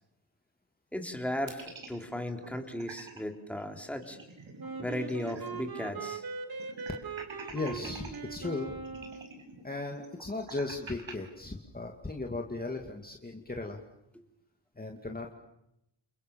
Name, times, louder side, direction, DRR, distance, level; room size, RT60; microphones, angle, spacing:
voice 1, 0.9-4.2 4.8-6.2, left 1 dB, 5° left, 4 dB, 3.4 m, -36 dB
sound 1, 1.5-3.2 3.6-3.7 3.9-5.7 6.0-6.1 6.6-8.2 8.8-11.1, right 4 dB, 70° right, 6.5 m, -47 dB
Wind instrument woodwind instrument, 4.6-9.3, right 4 dB, 45° right, 3.0 m, -40 dB
voice 2, 7.5-8.9 9.6-13.8 14.8-15.3, left 2 dB, 20° left, 1 dB, 2.4 m, -37 dB
30.0 x 28.0 x 7.1 m, 0.83 s
wide cardioid pair, 155°, 48 cm